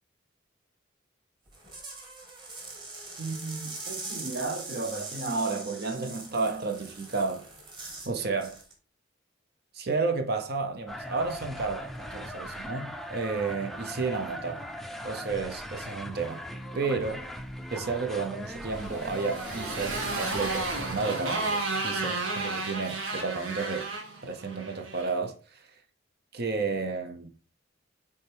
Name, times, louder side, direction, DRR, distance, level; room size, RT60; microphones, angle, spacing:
sound 1, 1.5-8.1 8.4-8.7, right 3 dB, 25° right, 1.5 m, -42 dB
voice 1, 3.2-7.5 8.1-8.6 9.7-14.6 15.0-16.4 16.7-17.3 17.7-23.9 24.2-25.7 26.3-27.3, right 4 dB, 55° right, 0.7 m, -32 dB
sound 2, 10.9-21.1, equal, ahead, 0.5 m, -40 dB
Motorcycle, 18.7-25.1, right 3 dB, 85° right, 1.6 m, -33 dB
8.6 x 3.4 x 3.4 m
head